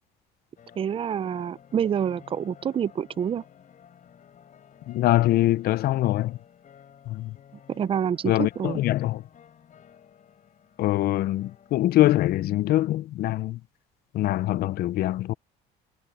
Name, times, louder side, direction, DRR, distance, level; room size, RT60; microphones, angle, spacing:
sound 1, 0.6-12.5, left 8 dB, 45° left, 6.1 m, -53 dB
voice 1, 0.8-3.4 7.7-8.8, right 8 dB, 30° right, 0.5 m, -27 dB
voice 2, 4.9-6.4 7.1-7.3 8.3-9.2 10.8-13.6 14.1-15.3, left 15 dB, 60° left, 0.6 m, -23 dB
cardioid pair, 105°, 18 cm